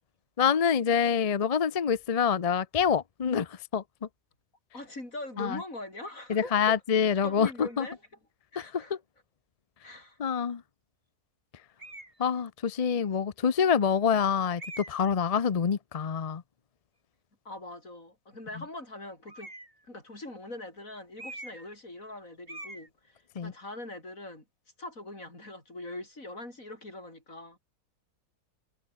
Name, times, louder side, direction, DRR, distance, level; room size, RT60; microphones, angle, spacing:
voice 1, 0.4-3.8 5.4-5.6 6.3-7.9 10.2-10.6 12.2-16.4 23.4-23.5, left 7 dB, 45° left, 0.5 m, -26 dB
voice 2, 4.7-6.6 7.2-8.0 8.5-9.0 9.8-10.2 17.5-19.5 19.8-24.4 24.8-27.6, left 2 dB, 60° left, 7.6 m, -42 dB
sound 1, 11.8-12.2 13.0-13.1 14.6-15.1 19.3-19.8 21.2-21.8 22.0-22.2 22.5-22.9, right 1 dB, 35° right, 5.7 m, -44 dB
omnidirectional pair, 1.6 m